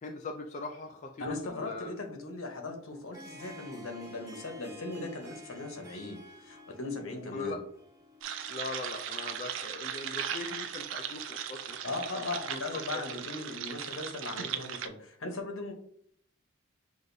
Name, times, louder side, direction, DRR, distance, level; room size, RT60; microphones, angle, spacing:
voice 1, 0.0-1.9 7.3-7.6 8.5-13.0, left 3 dB, 35° left, 3 dB, 0.3 m, -41 dB
voice 2, 1.2-7.6 11.8-15.7, left 2 dB, 75° left, 4 dB, 0.9 m, -38 dB
Harp, 2.8-10.6, left 1 dB, 15° right, 0.6 m, -52 dB
sound 1, 8.2-14.9, right 8 dB, 65° right, 0.4 m, -38 dB
6.2 x 2.5 x 2.6 m, 0.65 s
head